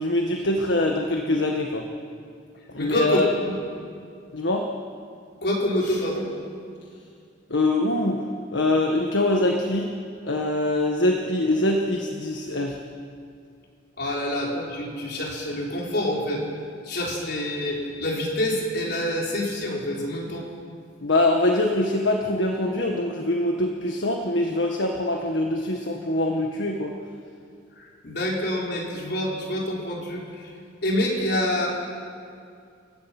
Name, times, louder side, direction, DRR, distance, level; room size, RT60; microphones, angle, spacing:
voice 1, 0.0-1.9 2.7-3.3 4.3-4.7 7.5-9.9 10.2-12.8 14.0-14.1 21.0-26.9, left 1 dB, 75° left, 2 dB, 1.6 m, -24 dB
voice 2, 2.8-3.6 5.4-6.3 14.0-16.4 16.8-20.5 27.7-30.5 30.8-31.7, left 1 dB, 60° left, -2 dB, 4.6 m, -27 dB
29.0 x 15.5 x 6.1 m, 2.3 s
head